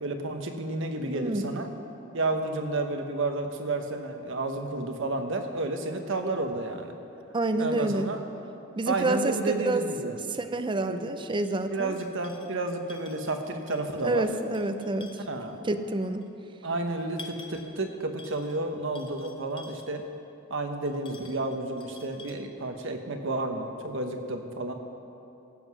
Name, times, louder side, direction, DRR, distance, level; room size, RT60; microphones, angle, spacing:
voice 1, 0.0-1.7 2.1-6.9 7.6-8.2 8.9-10.2 10.9-11.0 11.7-14.3 15.3-15.6 16.6-20.0 20.5-24.7, right 2 dB, 65° right, 5 dB, 1.1 m, -31 dB
voice 2, 1.1-1.4 7.3-8.1 8.8-9.8 10.4-12.0 14.0-15.2 15.6-16.3, right 2 dB, 25° right, 8 dB, 0.5 m, -28 dB
sound 1, 11.2-11.5 11.9-12.6 12.9-14.0 14.4-15.5 16.2-16.3 16.9-17.8 18.2-18.6 18.9-20.0 20.8-22.3, left 4 dB, 25° left, 0.8 m, -49 dB
15.5 x 7.6 x 6.1 m, 2.8 s
head